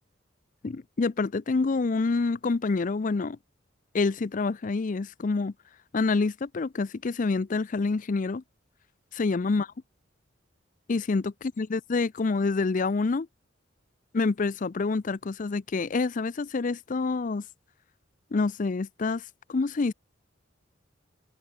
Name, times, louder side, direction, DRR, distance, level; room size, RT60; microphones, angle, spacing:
voice 1, 0.6-3.4 3.9-5.5 5.9-8.4 9.1-9.7 10.9-13.3 14.1-17.4 18.3-19.2 19.5-19.9, left 3 dB, 40° left, 0.5 m, -27 dB
head